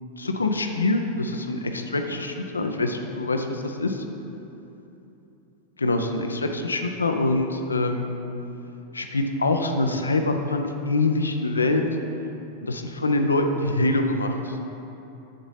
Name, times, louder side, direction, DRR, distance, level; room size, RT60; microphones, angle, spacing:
voice 1, 0.2-4.0 5.8-8.2 8.9-11.9 12.6-14.6, left 2 dB, 75° left, 5 dB, 0.5 m, -25 dB
7.2 x 4.0 x 5.5 m, 3.0 s
figure-of-eight pair, 90°, 0 cm